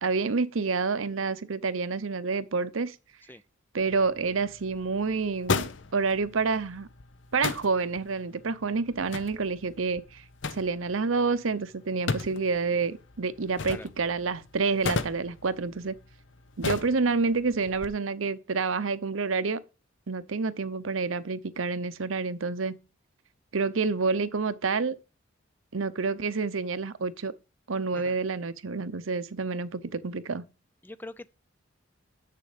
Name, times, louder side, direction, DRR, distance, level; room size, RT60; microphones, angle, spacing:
voice 1, 0.0-3.0 3.7-6.9 7.3-10.2 10.5-15.9 16.6-19.6 20.1-22.8 23.5-25.0 25.7-27.3 27.7-30.4, right 4 dB, 90° right, 0.8 m, -28 dB
sound 1, 3.8-17.9, left 4 dB, 65° left, 0.8 m, -37 dB
voice 2, 30.8-31.3, left 2 dB, 10° left, 0.3 m, -43 dB
8.0 x 6.8 x 4.9 m
head